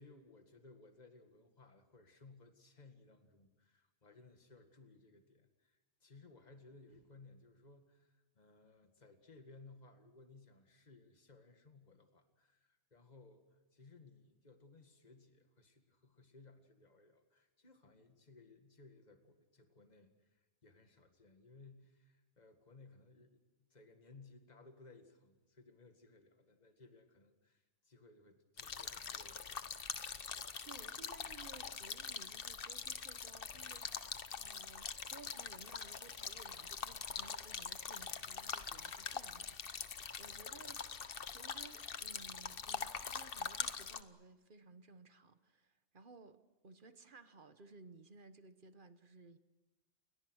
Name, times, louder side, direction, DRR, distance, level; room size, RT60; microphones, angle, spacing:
voice 1, 0.0-29.7, left 3 dB, 35° left, 2.1 m, -61 dB
sound 1, 28.6-44.0, left 6 dB, 50° left, 1.1 m, -44 dB
voice 2, 30.6-40.8 41.3-49.4, right 4 dB, 45° right, 1.3 m, -58 dB
29.5 x 22.0 x 6.4 m
omnidirectional pair, 1.2 m